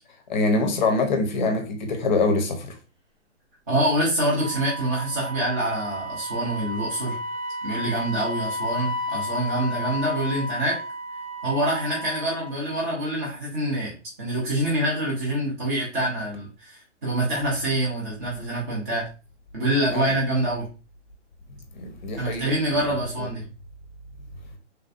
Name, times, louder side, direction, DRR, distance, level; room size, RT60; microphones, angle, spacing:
voice 1, 0.3-2.8 19.9-20.1 21.7-22.5, left 3 dB, 40° left, 0.6 m, -24 dB
voice 2, 3.7-7.2 7.6-10.8 11.4-13.9 14.2-19.0 19.5-20.7 22.2-23.4, right 1 dB, 15° right, 0.4 m, -25 dB
Wind instrument woodwind instrument, 4.3-12.6, left 1 dB, 90° right, 1.2 m, -33 dB
3.2 x 2.5 x 2.4 m
hypercardioid pair, 145°, 36 cm